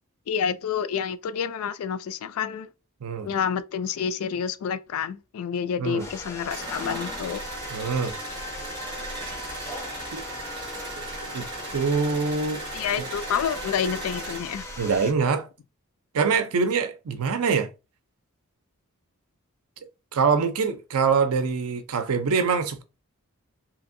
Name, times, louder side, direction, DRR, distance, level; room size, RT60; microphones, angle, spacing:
voice 1, 0.3-2.7 3.2-7.4 12.7-14.6, left 7 dB, 75° left, 0.3 m, -28 dB
sound 1, 6.0-15.1, left 1 dB, 15° left, 0.5 m, -39 dB
sound 2, 6.5-14.4, right 2 dB, 20° right, 1.1 m, -37 dB
voice 2, 7.7-8.2 10.1-10.2 11.0-11.5 11.7-12.6 13.0-13.1 14.8-15.5 16.1-17.7 20.1-22.8, right 5 dB, 80° right, 0.5 m, -24 dB
2.8 x 2.6 x 2.5 m
head